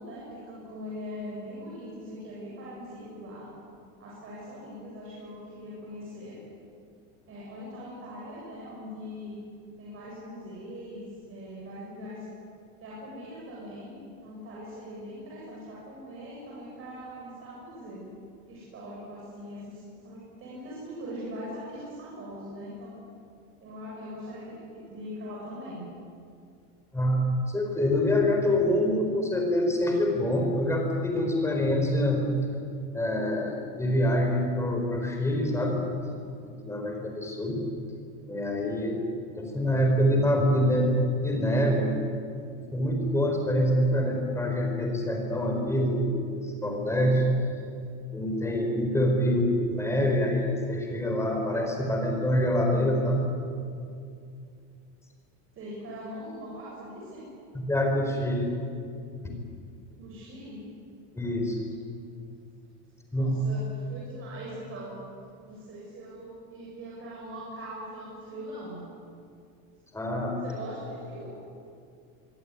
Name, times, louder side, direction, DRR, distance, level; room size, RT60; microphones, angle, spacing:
voice 1, 0.0-3.5 4.0-6.4 7.3-9.4 9.8-12.3 12.8-18.1 18.5-22.9 23.6-25.8 55.5-57.2 59.9-60.6 63.1-65.0 65.5-68.8 70.4-71.3, equal, 30° right, -5 dB, 7.6 m, -41 dB
voice 2, 27.5-32.2 32.9-35.8 36.4-37.6 38.3-39.0 39.3-40.9 41.2-41.9 42.5-47.2 48.1-53.2 57.5-58.5 61.1-61.6 63.1-63.3 69.9-70.3, left 1 dB, 5° left, 2 dB, 4.7 m, -26 dB
25.0 x 24.0 x 9.9 m, 2.4 s
cardioid pair, 175°, 43 cm